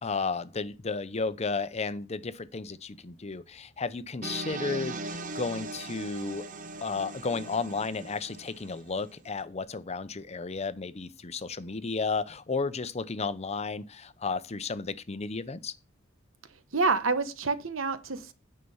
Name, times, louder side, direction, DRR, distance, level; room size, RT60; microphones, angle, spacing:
voice 1, 0.0-6.5 6.8-15.7, left 4 dB, 35° left, 0.6 m, -33 dB
sound 1, 4.2-9.1, right 2 dB, 40° right, 0.8 m, -40 dB
voice 2, 16.7-18.3, right 4 dB, 85° right, 1.1 m, -27 dB
9.6 x 5.8 x 5.6 m
head